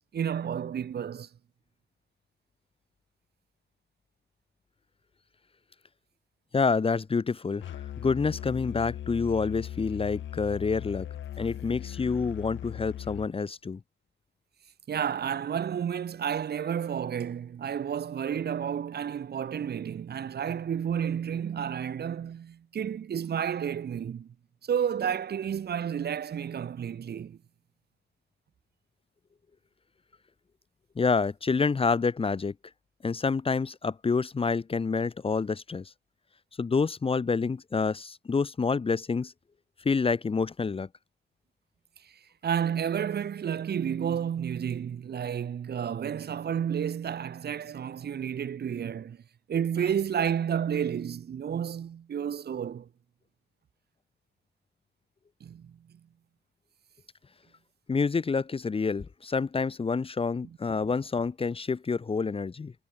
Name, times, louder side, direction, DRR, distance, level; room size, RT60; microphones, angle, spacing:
voice 1, 0.1-1.3 14.9-24.3 24.6-27.4 42.0-42.1 42.4-49.2 49.5-52.9 55.4-55.8, right 8 dB, 55° right, 2.9 m, -31 dB
voice 2, 6.5-11.1 11.4-13.8 31.0-32.5 33.0-35.9 36.6-39.3 39.8-40.9 57.9-62.7, left 4 dB, 30° left, 1.2 m, -28 dB
Musical instrument, 7.6-13.3, left 11 dB, 70° left, 6.6 m, -39 dB
cardioid pair, 90°, 20 cm